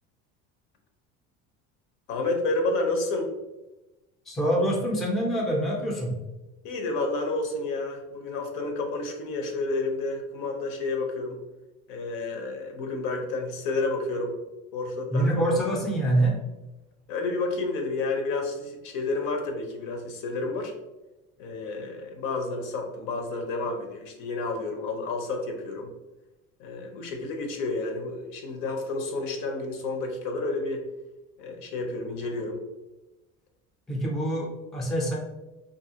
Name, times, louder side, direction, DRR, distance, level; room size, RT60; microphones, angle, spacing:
voice 1, 2.1-3.3 6.6-11.4 11.9-14.3 14.7-15.5 17.1-20.7 21.4-25.9 26.6-30.8 31.4-32.6, left 3 dB, 75° left, 3 dB, 0.7 m, -30 dB
voice 2, 4.3-6.2 15.1-16.4 33.9-35.2, right 1 dB, ahead, -2 dB, 0.3 m, -25 dB
2.7 x 2.6 x 2.7 m, 1.0 s
cardioid pair, 145°, 31 cm